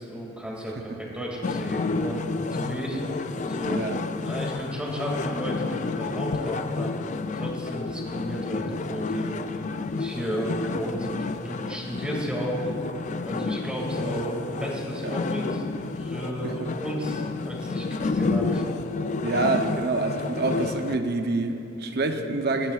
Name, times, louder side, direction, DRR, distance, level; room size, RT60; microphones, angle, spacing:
voice 1, 0.0-2.2 2.5-3.0 3.4-3.8 4.2-7.0 7.3-9.6 10.0-12.7 13.2-15.7 16.0-18.6, equal, 5° right, -3 dB, 2.3 m, -33 dB
sound 1, 1.4-21.0, left 3 dB, 35° left, 0.3 m, -30 dB
voice 2, 3.7-4.0 15.0-15.2 16.4-16.7 19.2-22.7, right 3 dB, 55° right, 6 dB, 0.7 m, -27 dB
20.5 x 13.5 x 2.4 m, 2.9 s
head